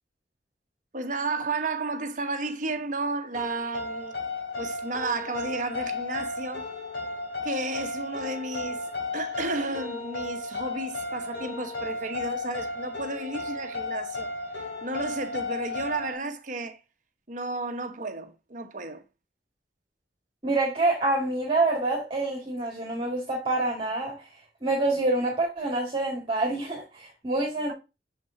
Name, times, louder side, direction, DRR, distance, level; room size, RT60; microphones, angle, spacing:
voice 1, 0.9-4.1 4.6-6.7 7.4-16.8 17.3-19.0, right 3 dB, 45° right, 1.1 m, -33 dB
sound 1, 3.3-16.2, left 3 dB, 85° left, 2.9 m, -34 dB
voice 2, 20.4-24.3 24.6-27.7, right 2 dB, 30° right, 2.1 m, -27 dB
6.8 x 6.1 x 2.7 m
head